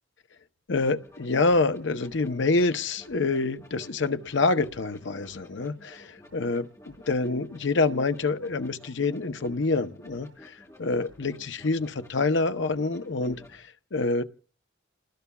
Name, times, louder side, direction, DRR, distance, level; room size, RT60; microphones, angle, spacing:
voice 1, 0.7-10.5 10.8-14.2, left 3 dB, 65° left, 0.7 m, -27 dB
sound 1, 0.8-13.6, left 1 dB, 15° left, 5.0 m, -52 dB
29.0 x 19.5 x 2.3 m
head